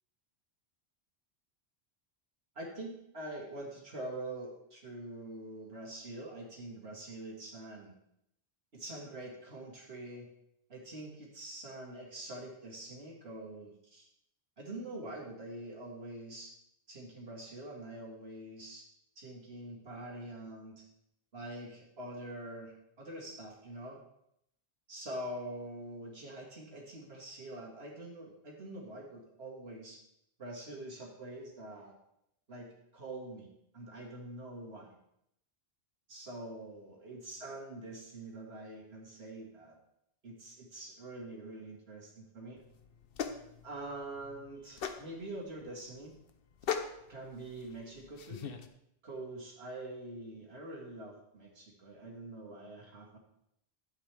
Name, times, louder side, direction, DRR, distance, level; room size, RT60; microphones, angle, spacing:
voice 1, 2.6-7.9 8.7-10.3 10.7-14.1 14.6-16.5 16.9-18.8 19.2-20.8 21.3-24.0 24.9-30.0 30.4-31.9 32.5-33.5 33.7-35.0 36.1-39.8 40.2-42.6 43.6-46.1 47.1-48.5 49.0-53.2, right 1 dB, 70° right, -2 dB, 2.1 m, -45 dB
sound 1, 42.6-48.7, left 7 dB, 65° left, 0.9 m, -41 dB
12.0 x 8.0 x 3.4 m, 0.77 s
omnidirectional pair, 1.1 m